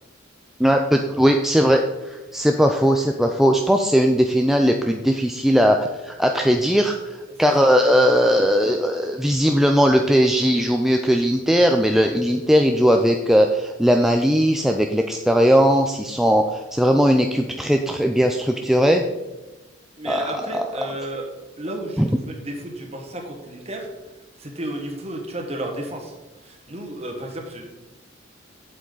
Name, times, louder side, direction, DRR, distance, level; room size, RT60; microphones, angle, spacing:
voice 1, 0.6-6.9 7.4-19.0 20.1-20.7 22.0-22.1, equal, ahead, 3 dB, 0.4 m, -18 dB
voice 2, 7.3-7.7 20.0-21.3 21.6-23.9 24.4-26.1 26.4-27.7, right 1 dB, 35° right, 2 dB, 1.5 m, -32 dB
8.4 x 7.5 x 4.0 m, 1.1 s
head